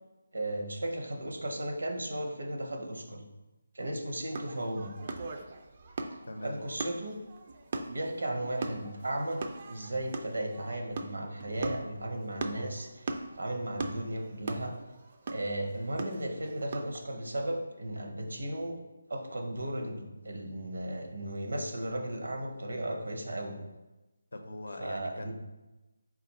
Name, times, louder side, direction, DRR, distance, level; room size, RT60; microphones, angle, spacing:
voice 1, 0.3-3.2 3.7-4.9 6.4-7.2 7.9-9.4 9.7-13.1 13.4-14.7 15.3-18.8 19.1-23.6 24.8-25.3, right 1 dB, 75° right, 2 dB, 0.8 m, -35 dB
sound 1, 4.3-17.0, right 3 dB, 40° right, 0.3 m, -40 dB
voice 2, 6.2-6.6 24.3-25.3, left 1 dB, 75° left, 5 dB, 0.5 m, -42 dB
4.1 x 2.4 x 4.1 m, 1.1 s
figure-of-eight pair, 160°, 0 cm